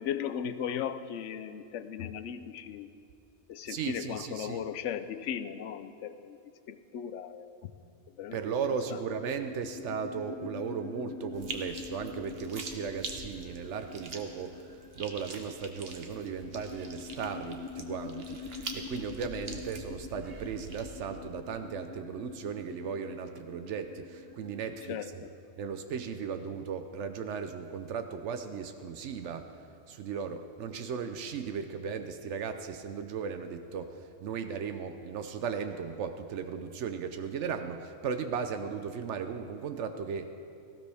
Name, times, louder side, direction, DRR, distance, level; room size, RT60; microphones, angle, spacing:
voice 1, 0.0-2.9 3.5-6.4 6.7-7.7 8.2-8.4 8.9-9.0 19.4-19.6 24.9-25.3, left 8 dB, 90° left, 12 dB, 1.0 m, -37 dB
voice 2, 3.7-4.6 8.3-14.7 15.0-25.0 25.6-29.5 29.9-40.3, right 6 dB, 85° right, 8 dB, 1.0 m, -36 dB
sound 1, 8.8-24.9, left 5 dB, 25° left, 0.5 m, -45 dB
sound 2, 11.3-20.8, right 3 dB, 60° right, 1.2 m, -44 dB
18.0 x 15.0 x 3.4 m, 2.5 s
omnidirectional pair, 1.2 m